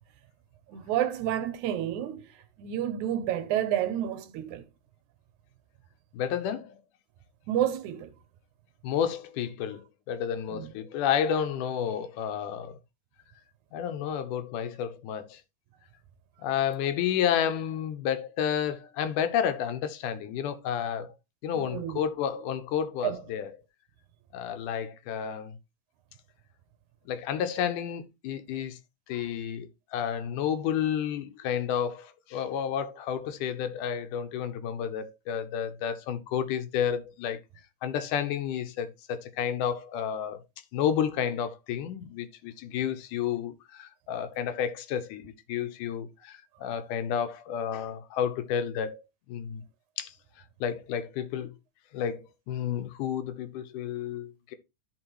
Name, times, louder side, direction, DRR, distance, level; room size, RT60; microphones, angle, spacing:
voice 1, 0.7-2.3 2.6-4.6 7.5-8.1 10.5-10.7 21.5-22.0 23.0-23.2, right 11 dB, 75° right, 2.1 m, -30 dB
voice 2, 6.1-6.8 8.8-9.8 10.1-12.8 13.7-15.4 16.4-21.1 21.4-23.5 24.3-25.6 27.1-28.8 29.1-37.4 37.8-40.4 40.7-49.0 49.3-49.6 50.0-50.1 50.6-51.5 51.9-54.6, left 8 dB, 80° left, 2.3 m, -31 dB
12.5 x 4.9 x 3.0 m
omnidirectional pair, 3.6 m